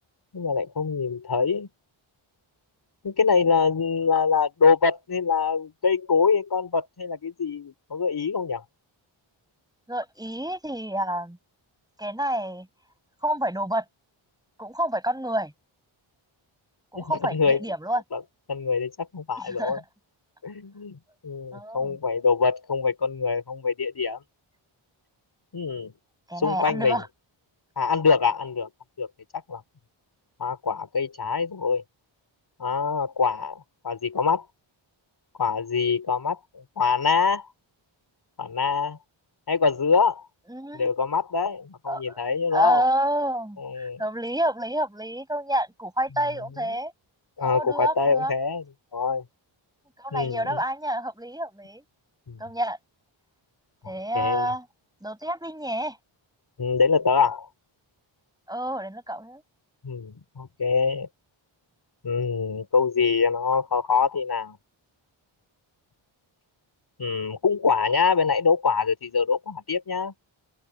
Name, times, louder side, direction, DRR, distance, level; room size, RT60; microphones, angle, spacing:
voice 1, 0.3-1.7 3.0-8.6 16.9-17.6 18.1-18.2 18.5-19.8 20.4-24.2 25.5-25.9 26.4-27.0 27.8-28.7 29.0-29.1 29.5-29.6 30.4-31.8 32.6-34.5 35.4-37.5 38.4-39.0 39.5-40.2 40.7-42.9 43.6-44.0 46.6-46.8 47.4-48.6 48.9-49.2 50.1-50.6 52.3-52.4 53.8-54.5 56.6-57.5 59.8-61.1 62.0-64.6 67.0-70.1, left 5 dB, 50° left, 4.7 m, -24 dB
voice 2, 9.9-11.4 12.0-12.7 13.2-13.8 14.6-15.5 16.9-18.0 19.4-19.8 21.5-22.0 26.3-27.1 40.5-40.9 41.9-42.2 42.5-46.9 47.4-48.3 50.0-51.8 52.4-52.8 53.9-54.6 55.0-56.0 58.5-59.4, right 1 dB, 10° right, 7.3 m, -28 dB
wide cardioid pair, 165°, 49 cm